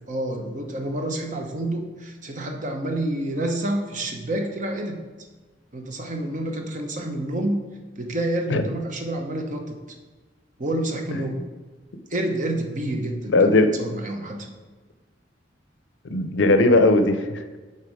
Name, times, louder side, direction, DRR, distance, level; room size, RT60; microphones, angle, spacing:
voice 1, 0.1-5.0 5.7-7.6 8.0-9.8 10.6-11.4 12.1-14.4, right 1 dB, 40° right, 3 dB, 0.9 m, -28 dB
voice 2, 13.3-13.8 16.0-17.4, left 2 dB, 75° left, 8 dB, 0.6 m, -18 dB
6.8 x 4.3 x 4.8 m, 1.3 s
head